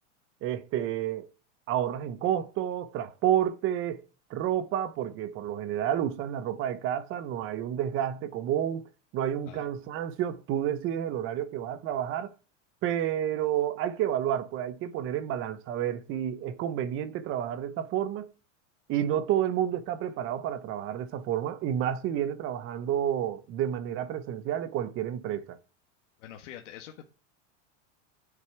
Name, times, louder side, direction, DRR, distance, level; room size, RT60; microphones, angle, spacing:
voice 1, 0.4-1.3 1.7-4.0 4.3-12.3 12.8-18.3 18.9-25.6, right 10 dB, 35° right, 1.0 m, -30 dB
voice 2, 26.2-27.1, left 11 dB, 70° left, 1.6 m, -45 dB
9.6 x 7.3 x 4.6 m
supercardioid pair, 160°, 38 cm